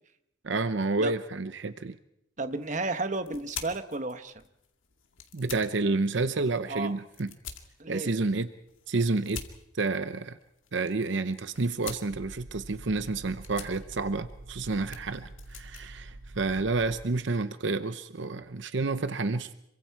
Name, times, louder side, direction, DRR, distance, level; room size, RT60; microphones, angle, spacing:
voice 1, 0.4-2.0 5.3-7.3 7.9-8.5 8.9-9.4 9.7-10.4 10.7-19.5, right 3 dB, 65° right, 11 dB, 0.8 m, -29 dB
sound 1, 2.4-17.0, left 7 dB, 80° left, 2.2 m, -48 dB
voice 2, 2.4-4.3 6.6-6.9 7.8-8.1, right 2 dB, 40° right, 9 dB, 1.1 m, -32 dB
sound 2, 12.1-17.1, right 1 dB, 85° right, 2.0 m, -46 dB
27.0 x 24.0 x 4.7 m, 0.82 s
head